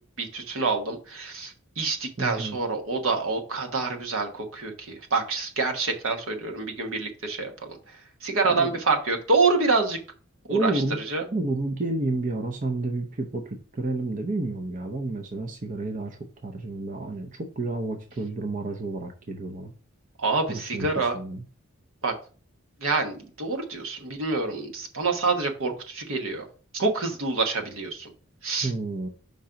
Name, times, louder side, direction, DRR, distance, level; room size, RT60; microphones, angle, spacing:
voice 1, 0.2-7.8 8.2-10.0 10.5-10.7 11.1-11.2 20.2-21.2 22.0-22.1 22.8-26.5 26.7-28.1 28.4-28.7, right 3 dB, 75° right, 3 dB, 1.2 m, -27 dB
voice 2, 2.2-2.6 8.4-8.8 10.5-11.0 11.3-19.7 20.5-21.4 28.6-29.1, right 2 dB, 35° right, 4 dB, 0.6 m, -30 dB
5.2 x 3.8 x 5.7 m, 0.40 s
head